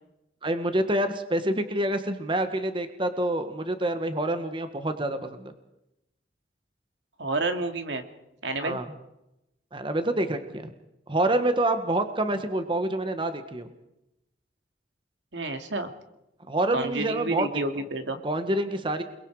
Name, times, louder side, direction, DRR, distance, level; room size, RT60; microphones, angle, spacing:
voice 1, 0.4-5.5 8.6-8.8 9.7-10.7 11.1-13.7 16.5-17.6 18.2-19.0, right 1 dB, 30° right, 8 dB, 1.5 m, -27 dB
voice 2, 7.2-8.0 8.4-8.8 15.3-15.9 16.7-18.2, right 2 dB, 90° right, 6 dB, 2.6 m, -29 dB
29.5 x 21.5 x 4.9 m, 0.88 s
head